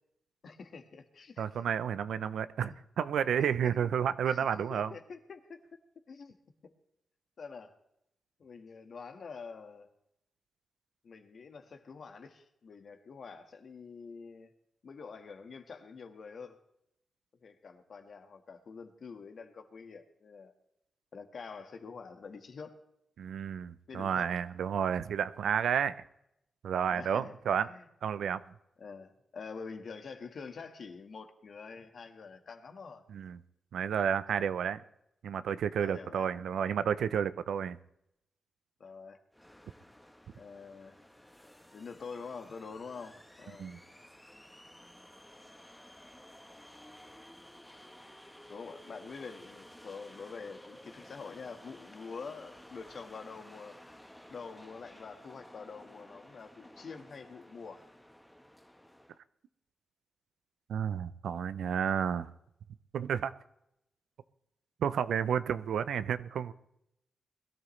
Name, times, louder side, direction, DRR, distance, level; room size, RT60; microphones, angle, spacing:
voice 1, 0.4-1.5 3.4-3.9 4.2-4.4 4.7-5.6 6.1-6.3 6.6-6.7 7.4-7.8 8.4-9.9 11.0-14.5 14.8-16.6 17.4-20.5 21.1-22.8 23.9-24.3 26.9-27.9 28.8-33.0 35.8-36.3 38.8-39.2 40.3-41.0 41.7-43.8 48.5-53.8 54.3-57.8, left 5 dB, 65° left, 6 dB, 1.6 m, -46 dB
voice 2, 1.4-4.9 23.2-25.9 26.6-27.7 28.0-28.4 33.1-33.4 33.7-34.8 35.2-37.8 43.6-43.8 60.7-62.3 62.9-63.3 64.8-66.5, right 8 dB, 90° right, 14 dB, 0.6 m, -31 dB
sound 1, 39.3-59.2, left 1 dB, 5° left, 1.2 m, -54 dB
21.0 x 13.0 x 3.2 m, 0.81 s
cardioid pair, 85°, 0 cm